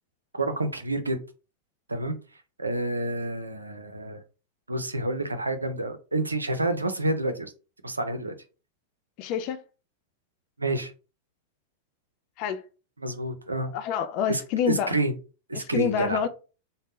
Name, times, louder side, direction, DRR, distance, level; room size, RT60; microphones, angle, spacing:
voice 1, 0.3-1.2 1.9-2.2 2.6-4.2 4.7-7.5 7.8-8.3 10.6-10.9 13.0-13.7 14.3-14.4 14.7-15.1 15.5-16.2, right 2 dB, 80° right, 0.5 m, -28 dB
voice 2, 9.2-9.6 12.4-12.6 13.7-15.0 15.5-16.3, left 8 dB, 45° left, 0.4 m, -27 dB
3.5 x 2.2 x 3.7 m
figure-of-eight pair, 90°, 0 cm